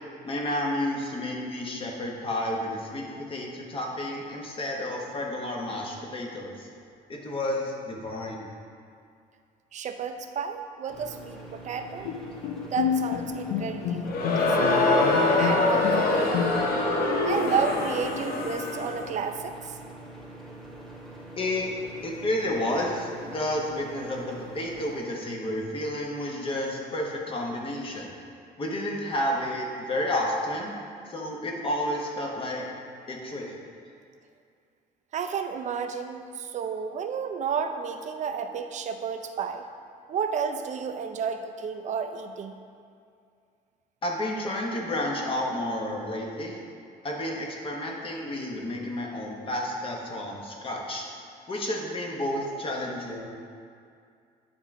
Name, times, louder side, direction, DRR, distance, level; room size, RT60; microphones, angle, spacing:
voice 1, 0.2-6.7 7.1-8.5 21.4-21.6 22.0-28.1 28.6-30.7 31.1-32.7 33.1-33.6 44.0-46.6 47.0-51.0 51.5-53.3, left 1 dB, 30° left, -1 dB, 1.1 m, -31 dB
voice 2, 9.7-12.1 12.6-14.9 15.4-16.4 17.2-19.8 35.1-39.6 40.1-42.6, right 6 dB, 45° right, 7 dB, 0.5 m, -32 dB
sound 1, 10.9-25.0, right 1 dB, 5° left, 1.1 m, -44 dB
Bowed string instrument, 12.0-16.9, left 7 dB, 90° left, 0.5 m, -30 dB
Crowd, 14.0-19.1, left 2 dB, 65° left, 0.9 m, -24 dB
10.0 x 3.5 x 3.6 m, 2.4 s
cardioid pair, 110°, 17 cm